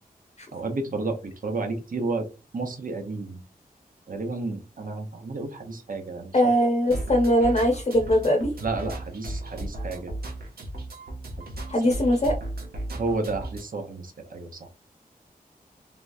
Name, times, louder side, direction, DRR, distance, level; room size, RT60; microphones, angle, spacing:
voice 1, 0.5-2.3 2.5-3.4 4.1-6.3 8.6-10.1 12.9-14.7, right 3 dB, 65° right, 4 dB, 0.9 m, -31 dB
voice 2, 6.3-8.5 11.7-12.3, equal, 45° left, 3 dB, 0.8 m, -21 dB
sound 1, 6.9-13.6, right 1 dB, 90° right, 1.0 m, -35 dB
3.4 x 3.0 x 2.6 m, 0.31 s
wide cardioid pair, 110°, 15 cm